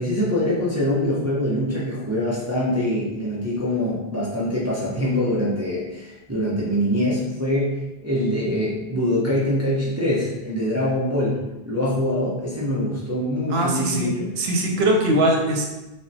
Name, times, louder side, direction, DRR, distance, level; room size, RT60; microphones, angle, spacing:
voice 1, 0.0-14.3, left 1 dB, 20° right, -8 dB, 0.4 m, -24 dB
voice 2, 13.5-15.6, right 1 dB, 80° right, 0 dB, 0.8 m, -21 dB
3.5 x 2.1 x 2.6 m, 1.0 s
omnidirectional pair, 1.1 m